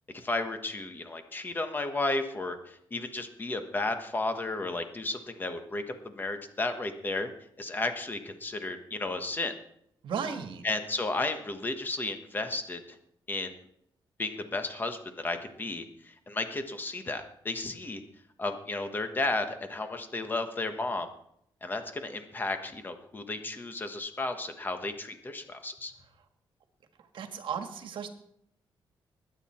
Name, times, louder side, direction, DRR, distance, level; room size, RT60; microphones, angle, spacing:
voice 1, 0.1-7.3 7.6-9.5 10.6-13.0 13.3-13.5 14.2-18.0 18.4-21.1 21.6-25.9, left 2 dB, 20° left, 7 dB, 1.3 m, -33 dB
voice 2, 10.0-10.6 27.1-28.1, right 7 dB, 70° right, 7 dB, 1.6 m, -35 dB
20.0 x 9.1 x 4.4 m, 0.73 s
wide cardioid pair, 170°, 9 cm